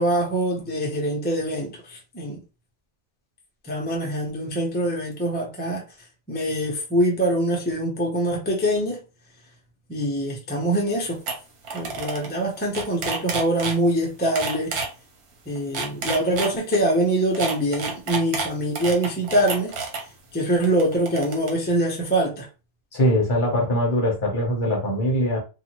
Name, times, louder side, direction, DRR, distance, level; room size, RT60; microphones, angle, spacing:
voice 1, 0.0-2.4 3.6-5.8 6.3-9.0 9.9-11.2 11.7-14.8 15.5-19.7 20.3-22.5, right 1 dB, 15° left, 0.4 m, -24 dB
sound 1, 10.9-11.0 11.3-11.4 11.6-12.3 12.6-13.8 14.4-14.9 15.6-16.8 17.3-20.0 20.6-21.5, right 4 dB, 85° right, 1.3 m, -29 dB
voice 2, 22.9-25.4, equal, 40° left, 0.9 m, -22 dB
2.6 x 2.5 x 2.9 m
omnidirectional pair, 1.6 m